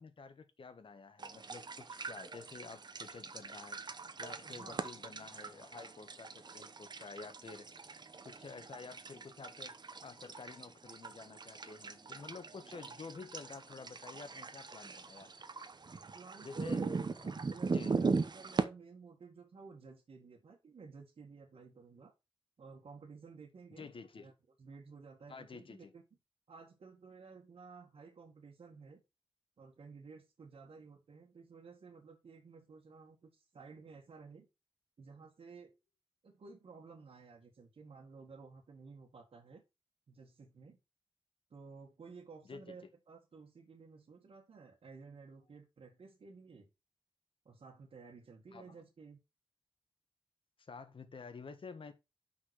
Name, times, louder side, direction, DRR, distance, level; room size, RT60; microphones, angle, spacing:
voice 1, 0.0-3.8 4.2-7.7 8.2-9.8 10.0-15.3 16.4-16.8 17.1-17.4 17.6-18.0 23.8-24.3 25.3-25.9 42.5-42.8 48.5-48.8 50.6-51.9, left 4 dB, 65° left, 1.5 m, -50 dB
sound 1, 1.2-18.6, right 4 dB, 50° right, 1.0 m, -40 dB
voice 2, 4.4-4.9 16.1-22.1 22.6-24.3 24.6-26.0 26.5-29.0 29.6-34.5 35.0-35.7 36.2-39.6 40.1-40.8 41.5-46.7 47.5-49.2, right 4 dB, 85° right, 2.0 m, -54 dB
6.0 x 5.9 x 6.4 m
wide cardioid pair, 110°, 10 cm